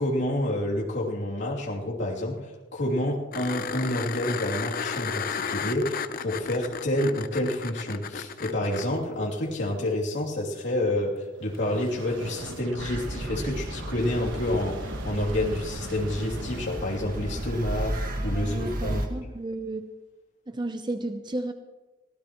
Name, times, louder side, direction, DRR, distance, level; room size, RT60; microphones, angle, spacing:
voice 1, 0.0-19.0, left 1 dB, 65° left, -4 dB, 3.0 m, -29 dB
sound 1, 3.3-8.9 11.5-11.6, left 6 dB, 50° left, 0.7 m, -33 dB
sound 2, 11.4-17.2, right 2 dB, 80° right, 1.3 m, -42 dB
sound 3, 12.8-19.1, right 1 dB, 50° right, 1.8 m, -33 dB
voice 2, 18.3-19.9 20.5-21.5, right 2 dB, 25° right, 8 dB, 0.7 m, -33 dB
24.5 x 16.5 x 3.1 m, 1.2 s
head